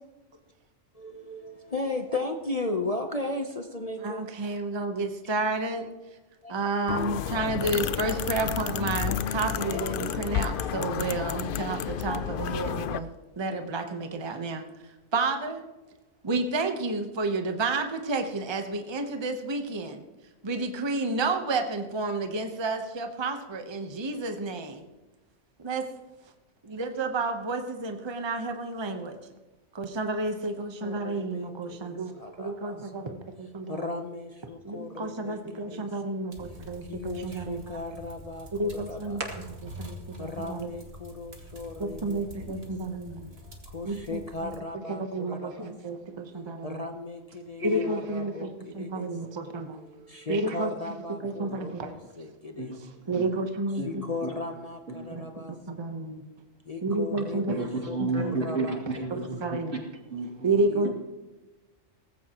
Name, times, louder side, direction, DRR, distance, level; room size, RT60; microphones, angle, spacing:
voice 1, 0.9-4.3 6.4-6.5 30.8-33.1 33.7-35.9 36.8-39.2 40.2-42.5 43.7-45.7 46.6-49.1 50.0-52.7 53.8-55.5 56.7-58.8 59.1-59.3 60.7-60.9, left 2 dB, 35° left, 5 dB, 0.8 m, -36 dB
voice 2, 4.0-5.9 6.5-13.1 13.4-15.6 16.2-20.0 20.4-24.9 25.6-25.8 26.6-29.2 29.7-34.0 34.6-37.8 38.5-39.2 39.8-40.8 41.8-43.3 43.8-46.9 47.6-49.8 50.3-52.0 53.1-54.0 55.1-56.2 56.8-57.6 58.0-58.4 59.1-59.8 60.4-60.9, right 3 dB, 25° right, 5 dB, 0.9 m, -31 dB
sound 1, 6.9-13.0, left 9 dB, 60° left, 0.5 m, -31 dB
sound 2, 36.3-44.6, left 1 dB, 50° right, 2.0 m, -46 dB
voice 3, 51.2-51.6 52.6-53.2 53.8-53.9 54.2-54.3 54.9-55.2 57.6-59.6 60.1-60.7, right 2 dB, 70° right, -1 dB, 3.0 m, -33 dB
18.0 x 15.0 x 3.0 m, 1.1 s
omnidirectional pair, 1.3 m